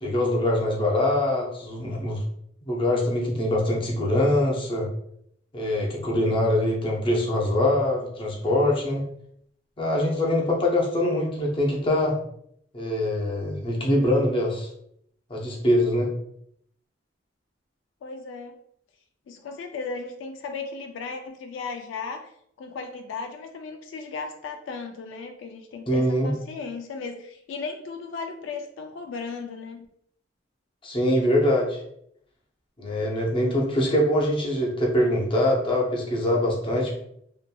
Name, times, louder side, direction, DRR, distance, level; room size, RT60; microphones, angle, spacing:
voice 1, 0.0-2.2 2.6-4.9 5.5-9.0 9.8-12.2 12.7-14.7 15.3-16.1 25.9-26.3 30.8-31.8 32.8-37.0, left 1 dB, 30° left, -2 dB, 0.6 m, -23 dB
voice 2, 18.0-18.5 19.3-22.3 22.6-29.9, left 4 dB, 80° left, 5 dB, 0.3 m, -36 dB
2.7 x 2.5 x 2.2 m, 0.71 s
head